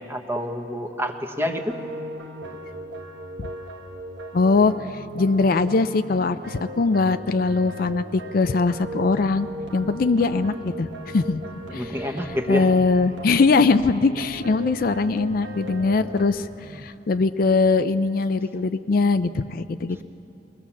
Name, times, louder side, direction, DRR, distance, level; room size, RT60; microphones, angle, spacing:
voice 1, 0.1-1.8 11.7-12.7 15.8-15.9, left 1 dB, 15° right, 5 dB, 1.1 m, -28 dB
sound 1, 1.4-16.5, equal, 90° right, 1.6 m, -37 dB
voice 2, 4.3-4.7 5.1-9.5 9.7-11.4 11.7-12.0 12.5-16.5 16.7-20.0, left 4 dB, 55° left, 11 dB, 0.4 m, -21 dB
22.5 x 18.5 x 7.3 m, 2.8 s
head